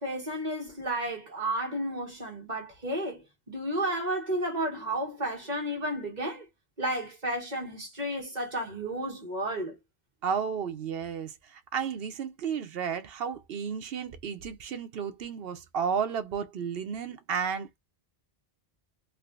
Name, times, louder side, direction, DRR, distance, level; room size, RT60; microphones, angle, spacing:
voice 1, 0.0-3.2 3.5-6.4 6.8-9.8, right 1 dB, 40° right, 1.7 m, -32 dB
voice 2, 10.2-17.8, right 7 dB, 70° right, 0.9 m, -33 dB
3.6 x 2.5 x 2.4 m
omnidirectional pair, 1.1 m